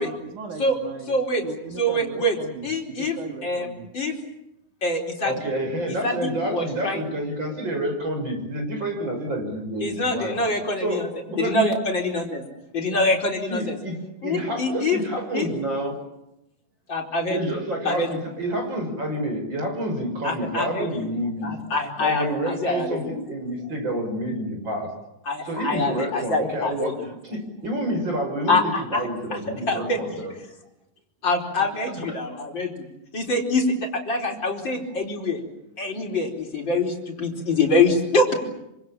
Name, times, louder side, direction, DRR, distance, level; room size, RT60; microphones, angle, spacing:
voice 1, 0.0-1.2 1.4-3.9 23.1-23.2 34.4-34.5, right 5 dB, 75° right, 3 dB, 3.8 m, -38 dB
voice 2, 1.1-1.4 1.8-2.4 2.6-3.2 3.4-3.7 3.9-4.2 4.8-5.3 6.0-7.0 9.8-11.1 11.4-12.4 12.7-13.8 14.2-15.0 15.3-15.5 16.9-17.5 17.9-18.1 20.2-21.1 21.4-23.1 25.3-26.9 28.5-29.1 29.7-30.0 31.2-32.9 33.1-35.4 35.8-38.3, left 2 dB, 35° left, 1 dB, 5.1 m, -25 dB
voice 3, 5.2-10.4 10.8-11.7 13.5-16.1 17.3-21.6 22.0-24.9 25.4-30.3 31.6-31.7, right 1 dB, 35° right, 3 dB, 6.9 m, -29 dB
27.5 x 26.5 x 7.4 m, 0.86 s
omnidirectional pair, 3.6 m